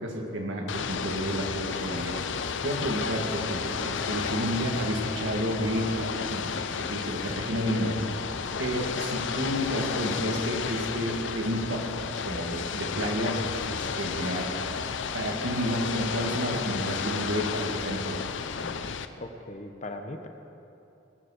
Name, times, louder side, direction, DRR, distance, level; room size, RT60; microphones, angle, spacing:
voice 1, 0.0-2.2 2.6-6.5 6.8-8.0 8.6-11.8 12.2-14.5 15.1-18.2 18.6-18.7, equal, 75° right, 0 dB, 2.1 m, -30 dB
Ocean / Boat Water vehicle, 0.7-19.1, left 6 dB, 70° left, 0.6 m, -32 dB
voice 2, 19.2-20.3, left 2 dB, 35° left, 6 dB, 0.9 m, -39 dB
20.0 x 7.4 x 6.6 m, 2.8 s
head